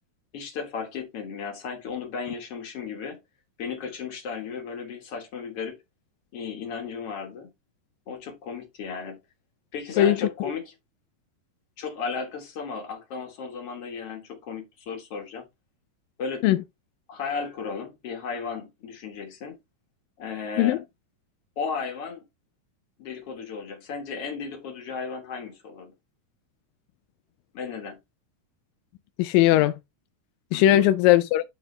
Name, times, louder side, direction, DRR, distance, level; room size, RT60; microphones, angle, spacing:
voice 1, 0.3-3.2 3.6-5.8 6.3-7.5 8.1-9.2 9.7-10.7 11.8-15.4 16.2-16.4 17.1-19.6 20.2-20.8 21.6-22.2 23.0-25.9 27.5-28.0 30.5-30.9, left 5 dB, 55° left, 1.8 m, -35 dB
voice 2, 10.0-10.3 16.4-16.6 20.6-20.8 29.2-29.8 30.5-31.4, left 13 dB, 80° left, 2.1 m, -19 dB
11.0 x 4.0 x 3.2 m
omnidirectional pair, 4.3 m